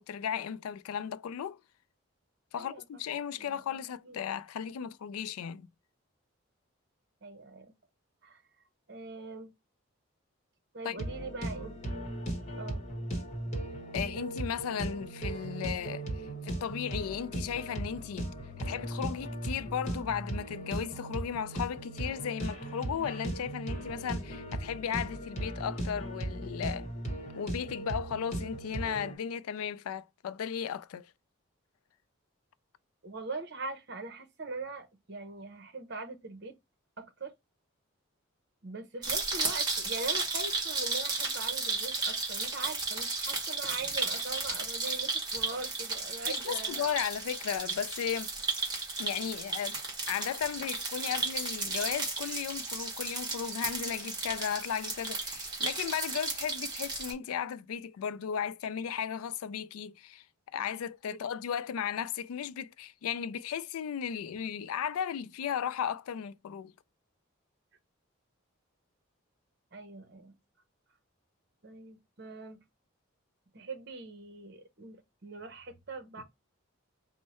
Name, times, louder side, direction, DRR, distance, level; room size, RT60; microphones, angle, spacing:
voice 1, 0.0-1.6 2.5-5.7 10.8-11.1 13.9-16.1 16.4-18.3 18.6-26.9 27.3-31.1 46.3-48.3 49.0-49.8 50.1-60.2 60.5-66.7, left 8 dB, 90° left, 0.3 m, -35 dB
voice 2, 2.6-3.0 3.4-4.3 7.2-7.7 8.2-8.4 8.9-9.5 10.7-11.8 12.6-12.8 33.0-36.5 37.0-37.3 38.6-46.9 61.1-61.2 69.7-70.3 71.6-72.6 73.5-76.2, right 3 dB, 50° right, 0.8 m, -42 dB
sound 1, 11.0-29.1, right 1 dB, 30° left, 1.0 m, -37 dB
sound 2, 39.0-57.1, right 3 dB, 20° right, 1.3 m, -34 dB
4.5 x 2.1 x 4.2 m
head